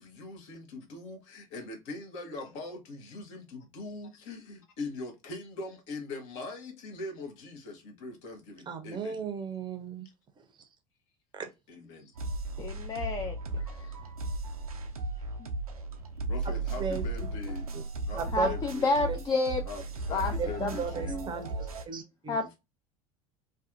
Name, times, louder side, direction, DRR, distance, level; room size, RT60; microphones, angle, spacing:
voice 1, 0.0-9.2 11.7-12.2 16.3-17.7 18.0-18.9 19.7-21.3 22.4-22.6, left 2 dB, 55° left, 0.9 m, -41 dB
voice 2, 8.7-10.1 10.4-10.7 11.3-11.5 16.8-17.0 17.7-17.8 18.2-18.5 19.0-19.2 20.4-21.5 21.9-22.4, right 5 dB, 25° right, 0.6 m, -35 dB
sound 1, 12.2-21.8, right 2 dB, 85° right, 0.4 m, -35 dB
voice 3, 12.6-13.3 15.4-15.5 18.3-19.6 20.1-20.3 20.6-20.7 22.3-22.5, left 3 dB, 20° left, 0.4 m, -29 dB
2.6 x 2.3 x 2.5 m
figure-of-eight pair, 70°, 18 cm